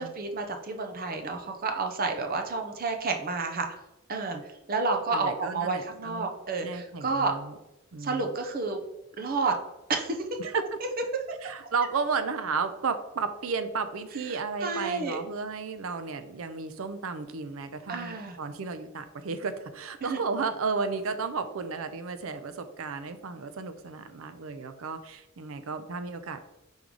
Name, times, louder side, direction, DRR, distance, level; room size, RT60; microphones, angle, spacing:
voice 1, 0.0-3.7 4.1-4.4 4.7-7.3 8.0-8.8 9.2-9.5 9.9-10.2 14.3-15.2 17.9-18.4 20.0-20.2, right 4 dB, 45° right, 4 dB, 0.7 m, -30 dB
voice 2, 5.1-6.3 6.6-7.6 7.9-8.3 10.4-10.6 11.4-26.4, right 4 dB, 80° right, 10 dB, 0.5 m, -33 dB
5.3 x 3.8 x 4.7 m, 0.94 s
head